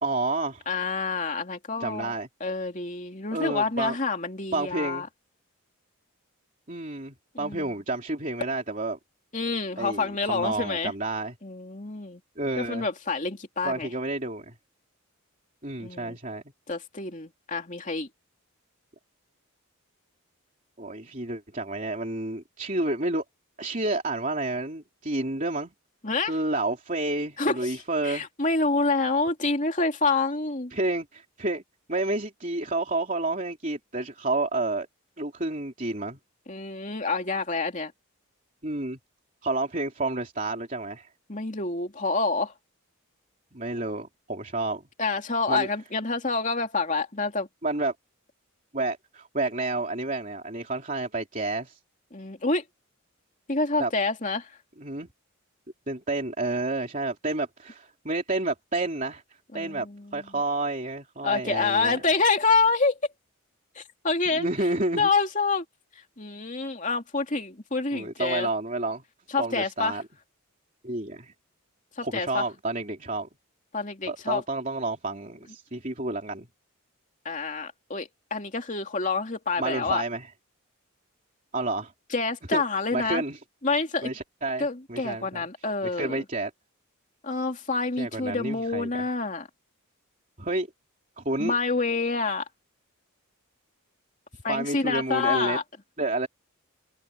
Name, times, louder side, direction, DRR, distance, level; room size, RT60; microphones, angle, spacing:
voice 1, 0.0-0.6 1.8-2.3 3.3-3.9 4.5-5.1 6.7-9.0 9.8-11.3 12.4-12.9 13.6-14.5 15.6-16.4 20.8-23.2 23.6-25.7 26.3-28.3 30.7-31.6 31.9-34.9 35.2-36.2 38.6-39.0 39.4-41.1 43.5-44.8 45.5-45.7 47.6-47.9 48.7-51.8 53.8-53.9 54.8-55.1 55.9-59.2 59.5-59.9 60.1-62.0 64.3-65.1 67.9-69.0 69.4-70.0 70.8-71.3 72.0-73.3 74.1-76.5 79.6-80.3 81.5-81.9 82.5-82.6 82.9-83.4 84.0-85.4 85.8-86.5 88.0-88.9 90.4-90.7 91.2-91.5 94.5-95.6 96.0-96.3, right 2 dB, 35° right, 3.3 m, -30 dB
voice 2, 0.7-2.1 2.4-5.1 7.3-7.7 9.3-10.9 11.4-12.2 12.6-13.9 15.8-16.2 16.7-18.1 26.0-26.3 27.4-30.7 36.5-37.9 41.3-42.5 45.0-47.5 52.1-52.6 53.5-54.5 59.5-60.3 61.2-63.0 63.7-64.5 65.0-65.6 66.2-68.5 69.3-70.0 72.0-72.4 73.7-74.4 77.2-80.0 82.1-83.2 83.6-84.1 84.6-86.2 87.2-89.5 91.4-92.4 94.4-95.6, left 3 dB, 35° left, 2.8 m, -27 dB
head